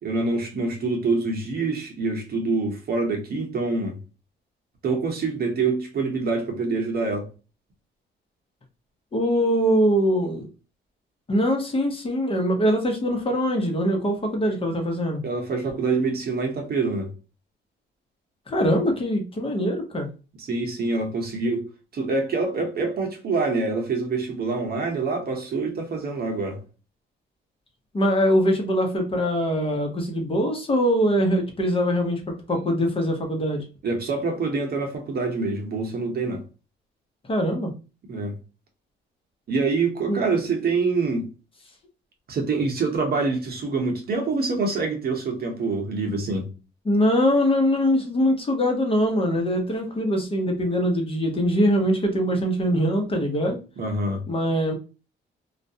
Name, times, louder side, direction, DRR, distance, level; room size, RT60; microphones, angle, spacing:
voice 1, 0.0-4.0 4.8-7.3 15.2-17.1 20.4-21.6 21.9-26.6 33.8-36.4 38.1-38.3 39.5-41.3 42.3-46.5 53.8-54.2, right 3 dB, 50° right, 0.9 m, -26 dB
voice 2, 9.1-10.5 11.3-15.2 18.5-20.1 27.9-32.2 32.5-33.6 37.3-37.7 40.1-40.2 46.9-53.6 54.3-54.7, equal, 25° left, 0.8 m, -22 dB
2.4 x 2.1 x 2.7 m
cardioid pair, 90°, 20 cm